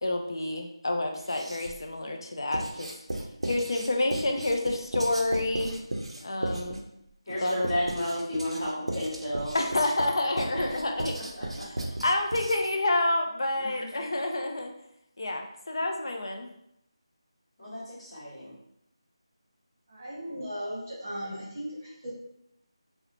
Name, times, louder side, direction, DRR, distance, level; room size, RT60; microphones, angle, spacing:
voice 1, 0.0-2.9 3.4-5.8 6.2-6.8 7.4-7.7 9.5-11.2 11.5-11.6 12.0-14.7 15.2-16.5, left 2 dB, 50° left, 3 dB, 0.3 m, -28 dB
Writing, 1.1-1.9 2.5-12.8, right 1 dB, 70° right, 0.5 m, -36 dB
voice 2, 7.2-9.6 10.5-11.8 13.5-13.9 17.6-18.6, left 1 dB, 25° left, -18 dB, 1.1 m, -33 dB
voice 3, 19.9-22.1, equal, 35° right, -6 dB, 0.9 m, -37 dB
2.8 x 2.0 x 2.5 m, 0.77 s
figure-of-eight pair, 175°, 3 cm